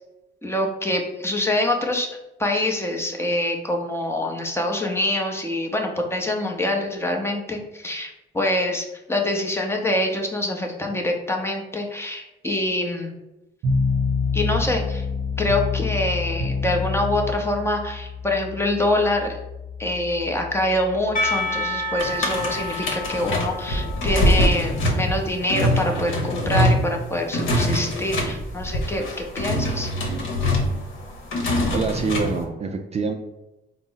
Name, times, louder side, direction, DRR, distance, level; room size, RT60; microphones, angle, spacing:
voice 1, 0.4-2.1 2.4-13.1 14.3-15.0 15.4-19.4 19.8-29.9, left 1 dB, 10° left, 2 dB, 0.7 m, -25 dB
sound 1, 13.6-24.8, left 4 dB, 80° right, 0.6 m, -28 dB
Percussion / Church bell, 21.1-25.9, left 1 dB, 40° left, 0.9 m, -30 dB
sound 2, 22.0-32.4, left 1 dB, 75° left, 0.9 m, -24 dB
voice 2, 31.7-33.1, right 4 dB, 35° right, 4 dB, 0.3 m, -25 dB
3.9 x 2.0 x 3.8 m, 0.96 s
cardioid pair, 90°, 20 cm